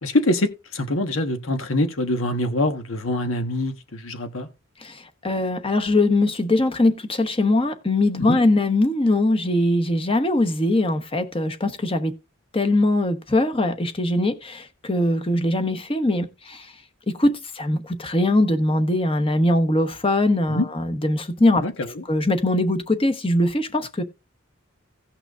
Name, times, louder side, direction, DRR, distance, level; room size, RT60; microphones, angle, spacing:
voice 1, 0.0-4.5 8.2-8.4 20.5-20.7 21.6-22.0, left 1 dB, 85° left, 1.4 m, -24 dB
voice 2, 4.8-12.1 12.5-16.7 17.1-21.7 22.1-24.0, left 1 dB, 30° left, 1.1 m, -21 dB
17.0 x 6.0 x 2.5 m
head